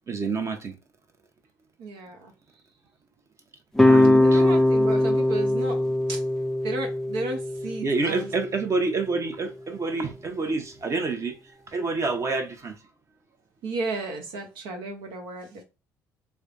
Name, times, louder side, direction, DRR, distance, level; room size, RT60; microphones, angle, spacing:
voice 1, 0.1-0.7 3.9-4.4 7.8-11.3 11.7-12.7, right 3 dB, 35° right, 0.9 m, -27 dB
voice 2, 1.8-2.3 4.1-6.2 6.6-8.3 13.6-15.6, right 3 dB, 80° right, 1.0 m, -33 dB
sound 1, 3.8-8.9, left 1 dB, 5° left, 0.4 m, -21 dB
3.2 x 2.2 x 3.9 m
supercardioid pair, 70°, 8 cm